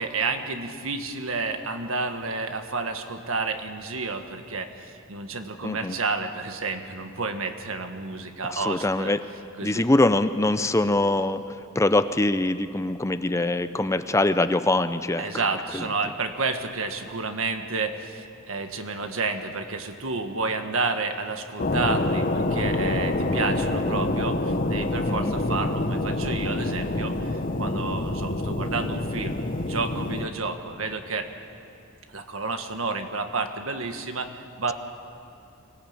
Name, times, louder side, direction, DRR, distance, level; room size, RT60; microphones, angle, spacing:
voice 1, 0.0-9.1 9.6-9.8 15.2-31.3 32.1-34.3 34.6-34.7, right 3 dB, 75° right, 6 dB, 1.7 m, -30 dB
voice 2, 5.6-6.0 8.4-9.2 9.6-15.3 15.7-15.8 25.1-25.4, left 2 dB, 15° left, 11 dB, 0.5 m, -23 dB
sound 1, 21.6-30.3, left 2 dB, 40° left, 1.1 m, -26 dB
24.5 x 17.5 x 8.8 m, 2.8 s
head